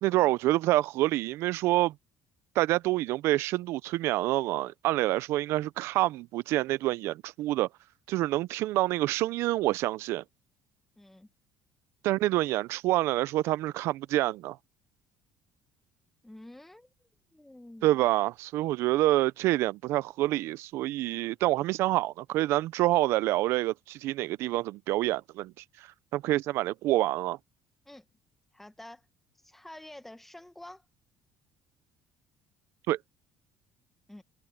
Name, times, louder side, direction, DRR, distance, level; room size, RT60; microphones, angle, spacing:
voice 1, 0.0-1.9 2.6-7.7 8.1-10.2 12.0-14.6 17.8-27.4 32.9-33.0, right 16 dB, 70° right, 0.4 m, -27 dB
voice 2, 11.0-11.3 16.2-18.0 27.8-28.0 28.5-29.0 29.4-30.8 34.1-34.2, left 1 dB, 5° left, 1.3 m, -49 dB
cardioid pair, 150°, 5 cm